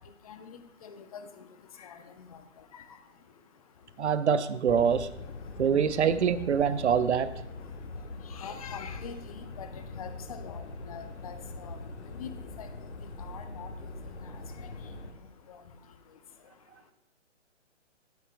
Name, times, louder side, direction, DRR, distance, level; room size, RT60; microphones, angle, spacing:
voice 1, 0.3-1.5 1.8-2.0 2.3-2.4 2.7-2.8 6.6-6.7 8.3-9.7 10.0-11.8 12.2-12.3 12.6-12.7 13.2-13.7 14.6-14.7 15.5-15.6, left 7 dB, 30° left, 8 dB, 0.7 m, -44 dB
voice 2, 4.0-5.1 5.6-7.3, right 7 dB, 65° right, 14 dB, 0.7 m, -25 dB
sound 1, 4.7-15.1, left 3 dB, 65° left, 1.3 m, -42 dB
16.5 x 9.3 x 2.3 m, 0.82 s
hypercardioid pair, 145°, 37 cm